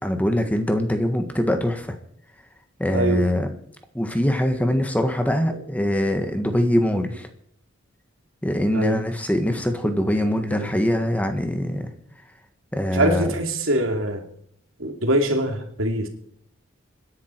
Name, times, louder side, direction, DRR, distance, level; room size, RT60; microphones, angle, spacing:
voice 1, 0.0-1.9 2.8-3.5 3.9-7.3 8.4-11.9 12.7-13.3, left 1 dB, 5° left, 6 dB, 1.5 m, -23 dB
voice 2, 2.9-3.3 8.7-9.0 9.8-9.9 10.6-10.7 12.9-14.2 14.8-16.1, right 1 dB, 80° right, 5 dB, 2.7 m, -23 dB
26.0 x 11.0 x 4.6 m, 0.66 s
head